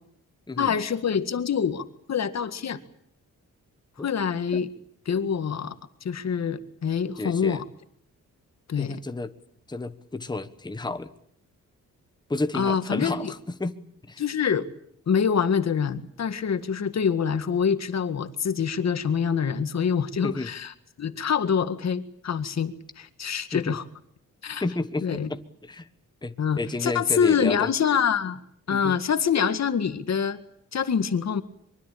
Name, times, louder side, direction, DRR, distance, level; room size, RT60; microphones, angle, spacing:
voice 1, 0.6-2.8 4.0-4.7 5.1-5.8 6.0-7.6 8.7-9.0 12.5-13.3 14.2-14.7 15.1-20.7 21.0-23.8 24.4-24.6 25.0-25.3 26.4-28.4 28.7-30.4 30.7-31.4, left 7 dB, 55° left, 11 dB, 1.9 m, -25 dB
voice 2, 7.2-7.6 8.8-9.3 9.7-11.1 12.3-13.8 14.1-14.2 20.2-20.5 23.5-23.8 24.6-25.9 26.2-27.7 28.7-29.0, left 2 dB, 15° left, 10 dB, 1.2 m, -31 dB
24.0 x 23.5 x 8.7 m, 0.68 s
wide cardioid pair, 130°, 32 cm